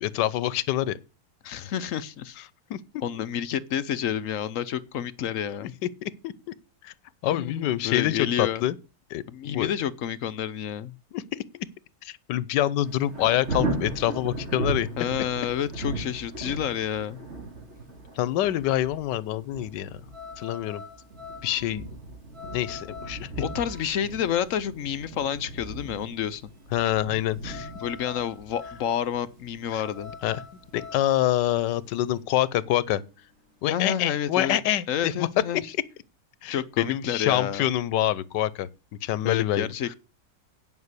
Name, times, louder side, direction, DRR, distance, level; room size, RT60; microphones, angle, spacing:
voice 1, 0.0-1.0 2.7-2.8 5.6-5.7 6.0-6.3 6.8-6.9 7.2-8.8 9.1-9.2 9.5-9.7 11.1-11.2 11.5-11.7 12.0-14.9 16.4-16.5 18.2-20.0 20.4-20.8 21.4-21.9 22.5-23.3 26.7-27.7 29.7-29.8 30.2-30.4 30.7-33.0 33.6-35.3 36.4-38.7 39.0-39.7, left 13 dB, 90° left, 1.3 m, -26 dB
voice 2, 1.4-2.4 3.0-5.7 7.3-8.7 9.3-10.9 15.0-17.2 23.4-26.4 27.8-30.1 33.7-34.6 34.9-35.6 36.5-37.7 39.2-39.9, left 9 dB, 60° left, 0.9 m, -29 dB
Thunder, 12.8-31.6 32.1-32.2, right 2 dB, 40° right, 3.0 m, -37 dB
sound 1, 17.1-33.8, left 5 dB, 60° right, 3.3 m, -46 dB
9.6 x 5.4 x 8.1 m
omnidirectional pair, 1.8 m